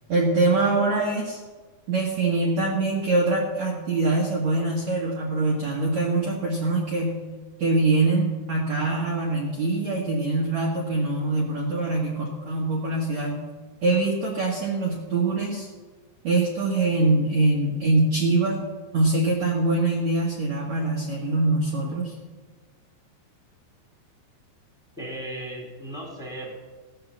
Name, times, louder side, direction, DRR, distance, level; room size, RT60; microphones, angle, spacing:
voice 1, 0.1-1.4 1.9-7.2 7.6-13.4 13.8-15.7 16.2-18.5 18.9-22.1, right 2 dB, 50° right, -3 dB, 2.4 m, -23 dB
voice 2, 25.0-26.5, right 1 dB, ahead, -1 dB, 3.2 m, -36 dB
17.5 x 7.6 x 7.5 m, 1.4 s
omnidirectional pair, 5.0 m